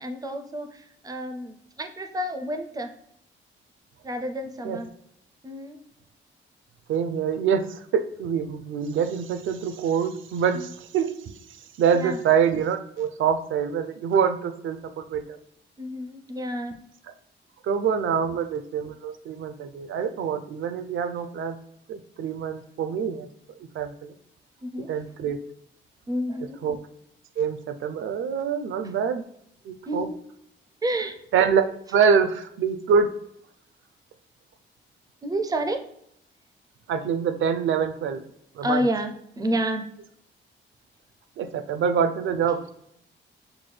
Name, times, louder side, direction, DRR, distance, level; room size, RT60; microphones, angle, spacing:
voice 1, 0.0-2.9 4.0-4.9 5.4-5.8 10.5-10.7 11.9-12.2 15.8-16.8 24.6-24.9 26.1-26.6 29.9-30.2 30.8-31.2 35.2-35.9 38.6-39.9, equal, 20° right, 6 dB, 0.4 m, -29 dB
voice 2, 6.9-11.1 11.8-15.4 17.6-21.6 21.9-23.3 23.7-24.1 24.9-25.4 26.6-26.8 27.4-29.2 29.6-30.1 31.3-31.6 31.9-33.1 36.9-38.2 38.5-38.8 41.4-42.7, right 7 dB, 75° right, 9 dB, 0.5 m, -25 dB
5.9 x 2.2 x 3.2 m, 0.73 s
wide cardioid pair, 175°, 20 cm